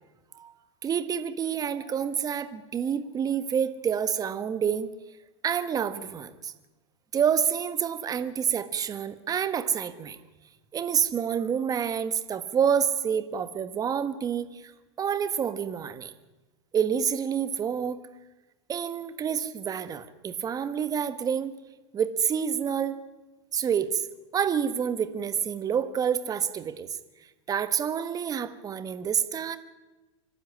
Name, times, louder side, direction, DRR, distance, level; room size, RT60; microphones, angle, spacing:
voice 1, 0.8-4.9 5.4-6.5 7.1-10.2 10.7-14.6 15.0-16.1 16.7-18.0 18.7-21.5 21.9-23.0 23.5-24.0 24.3-26.9 27.5-29.6, right 8 dB, 25° right, 12 dB, 1.5 m, -28 dB
26.0 x 12.0 x 9.9 m, 1.1 s
supercardioid pair, 130°, 15 cm